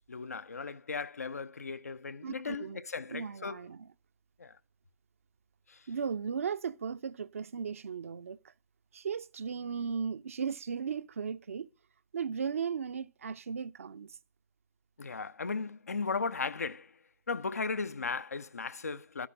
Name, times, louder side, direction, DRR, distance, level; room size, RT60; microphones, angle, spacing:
voice 1, 0.1-3.6 4.4-4.6 5.7-5.8 15.0-16.9 17.3-19.3, left 4 dB, 70° left, 0.8 m, -36 dB
voice 2, 2.2-2.8 3.1-3.9 5.9-8.4 8.9-11.7 12.1-14.1, right 6 dB, 60° right, 0.8 m, -36 dB
12.5 x 10.0 x 6.5 m
figure-of-eight pair, 135°, 9 cm